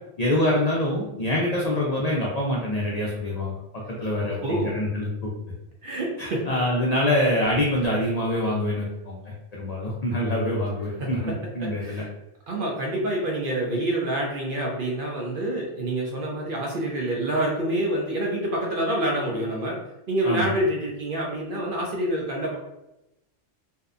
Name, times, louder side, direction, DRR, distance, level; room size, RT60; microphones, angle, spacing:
voice 1, 0.2-3.6 3.9-5.1 6.2-12.0 20.2-20.5, left 1 dB, 75° left, -3 dB, 0.3 m, -25 dB
voice 2, 4.2-4.7 5.8-6.4 11.0-11.1 11.6-12.1 12.5-19.8 20.1-22.6, right 1 dB, 60° right, -2 dB, 0.6 m, -27 dB
2.6 x 2.1 x 2.4 m, 0.91 s
omnidirectional pair, 1.2 m